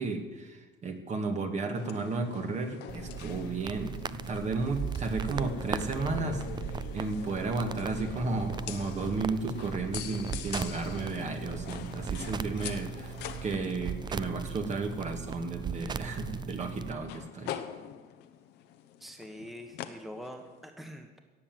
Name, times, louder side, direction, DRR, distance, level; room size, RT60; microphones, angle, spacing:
voice 1, 0.0-17.5, right 3 dB, 45° right, 4 dB, 2.0 m, -33 dB
sound 1, 1.7-20.7, left 10 dB, 85° left, 1.0 m, -44 dB
sound 2, 2.9-16.9, right 7 dB, 25° right, 0.4 m, -38 dB
voice 2, 19.0-21.2, equal, ahead, 4 dB, 1.3 m, -44 dB
17.5 x 7.3 x 7.7 m, 1.2 s
cardioid pair, 110°, 17 cm